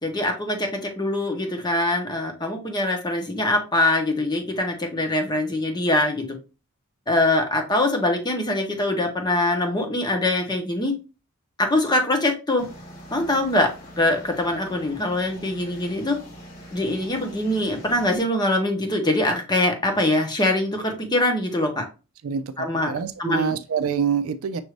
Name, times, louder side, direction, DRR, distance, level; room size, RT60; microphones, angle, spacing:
voice 1, 0.0-6.3 7.1-11.0 11.6-12.6 13.1-13.7 14.0-16.2 16.7-21.8 22.6-22.9 23.2-23.6, left 1 dB, 20° left, 0.9 m, -23 dB
sound 1, 12.6-18.2, equal, 45° left, 1.4 m, -43 dB
voice 2, 22.9-24.6, right 7 dB, 70° right, 0.4 m, -25 dB
6.1 x 2.6 x 3.2 m
head